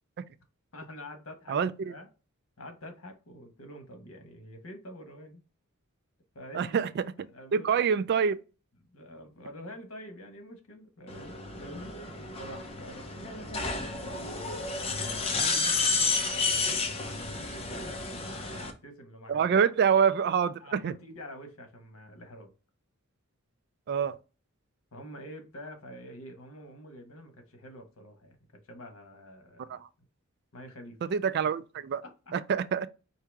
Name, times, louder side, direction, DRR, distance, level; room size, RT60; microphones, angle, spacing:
voice 1, 0.7-2.1 2.6-5.4 6.3-6.9 7.3-7.8 8.8-12.0 12.4-19.5 20.6-22.5 24.9-28.4 28.6-29.8 30.5-31.0 32.0-32.3, equal, 70° left, 1.1 m, -47 dB
voice 2, 1.5-1.9 6.5-7.1 7.5-8.4 19.3-20.9 23.9-24.2 29.7-29.9 31.0-32.0 32.3-32.9, right 7 dB, 50° right, 0.3 m, -26 dB
sound 1, 11.1-18.7, left 4 dB, 25° left, 0.7 m, -31 dB
4.7 x 2.8 x 3.4 m
head